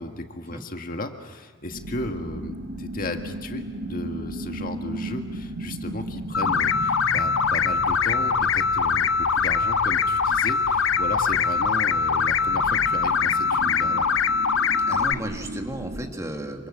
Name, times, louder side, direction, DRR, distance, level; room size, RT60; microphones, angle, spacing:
voice 1, 0.0-14.1, left 2 dB, 45° left, 5 dB, 1.8 m, -35 dB
sound 1, 1.7-16.1, right 1 dB, 70° right, 3.1 m, -36 dB
sound 2, 6.3-15.1, left 6 dB, 90° left, 0.8 m, -22 dB
voice 2, 14.9-16.7, right 1 dB, 15° right, 4 dB, 1.9 m, -34 dB
27.0 x 26.0 x 7.4 m, 1.5 s
head